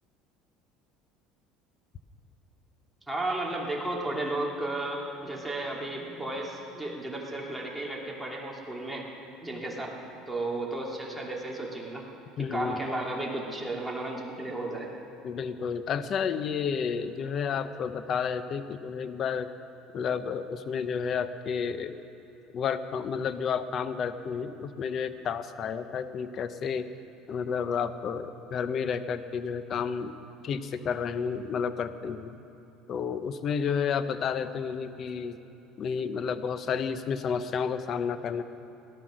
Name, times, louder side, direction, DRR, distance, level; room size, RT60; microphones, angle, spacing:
voice 1, 3.1-9.0 9.4-10.0 10.3-12.1 12.4-14.9, right 2 dB, 5° right, -3 dB, 2.4 m, -33 dB
voice 2, 12.4-12.8 15.2-19.5 19.9-22.0 22.5-26.9 27.3-30.1 30.4-32.3 32.9-35.4 35.8-38.4, left 6 dB, 45° left, 12 dB, 0.7 m, -31 dB
18.0 x 12.0 x 6.2 m, 2.8 s
cardioid pair, 120°, 0 cm